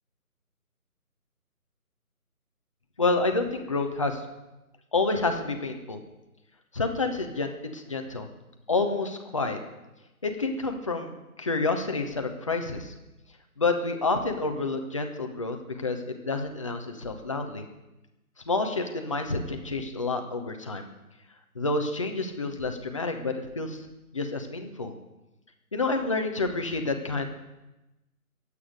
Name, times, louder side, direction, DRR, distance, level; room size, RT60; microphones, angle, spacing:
voice 1, 3.0-4.2 4.9-6.0 6.7-8.3 8.7-9.6 10.2-12.9 13.6-16.0 16.2-17.7 18.5-20.8 21.5-23.8 24.1-24.9 25.7-27.3, left 3 dB, 20° left, 5 dB, 0.8 m, -29 dB
22.5 x 8.5 x 5.1 m, 0.99 s
figure-of-eight pair, 155°, 45 cm